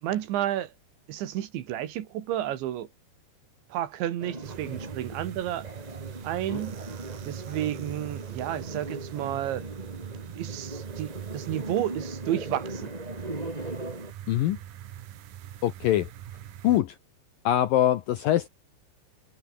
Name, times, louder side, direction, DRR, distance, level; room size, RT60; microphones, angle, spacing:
voice 1, 0.0-0.7 1.1-2.9 3.7-5.7 6.2-6.8 7.3-9.7 10.4-12.9, right 12 dB, 80° right, 4.2 m, -31 dB
sound 1, 4.2-14.1, right 2 dB, 10° right, 2.8 m, -39 dB
sound 2, 4.4-16.8, right 12 dB, 60° right, 2.8 m, -42 dB
voice 2, 14.3-14.6 15.6-16.1 16.6-17.0 17.4-18.5, left 12 dB, 75° left, 2.1 m, -23 dB
omnidirectional pair, 5.2 m